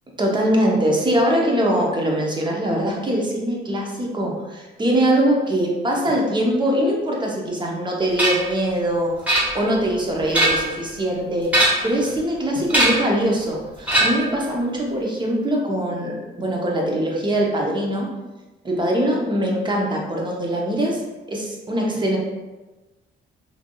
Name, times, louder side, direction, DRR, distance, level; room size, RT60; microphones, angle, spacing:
voice 1, 0.2-18.1 18.6-21.0 21.3-22.2, right 1 dB, 25° right, -2 dB, 0.7 m, -22 dB
sound 1, 8.2-8.5 9.3-9.8 10.2-10.8 11.4-12.0 12.7-13.1 13.9-14.4, right 1 dB, 5° right, 1.1 m, -20 dB
3.3 x 2.6 x 2.2 m, 1.1 s
cardioid pair, 90°, 20 cm